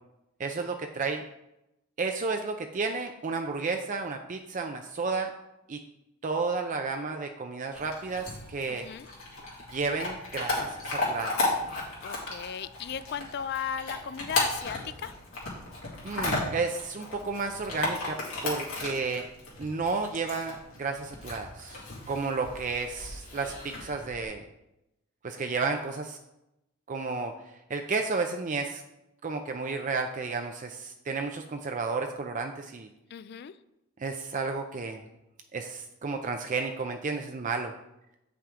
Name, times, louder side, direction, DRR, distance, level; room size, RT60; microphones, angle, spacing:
voice 1, 0.4-1.2 2.0-5.3 5.7-5.8 6.2-8.9 9.7-11.6 16.0-19.3 19.6-21.8 22.1-24.4 25.2-26.2 26.9-27.3 27.7-28.8 29.2-32.9 34.0-35.0 35.5-37.7, right 4 dB, 35° right, 5 dB, 0.4 m, -32 dB
Chewing mastication / Dog, 7.7-24.3, left 2 dB, 75° left, 2.2 m, -35 dB
voice 2, 8.7-9.1 12.0-15.1 33.1-33.5, left 8 dB, 50° left, 15 dB, 0.3 m, -36 dB
8.1 x 5.9 x 3.7 m, 0.89 s
head